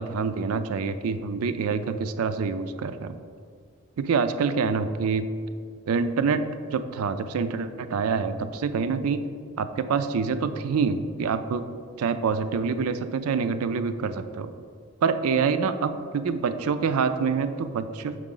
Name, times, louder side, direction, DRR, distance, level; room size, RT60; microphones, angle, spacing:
voice 1, 0.0-3.2 4.0-5.3 5.9-6.4 6.7-9.2 9.6-11.7 12.0-14.5 15.0-18.2, right 5 dB, 90° right, 11 dB, 0.4 m, -26 dB
6.3 x 4.8 x 3.8 m, 2.2 s
head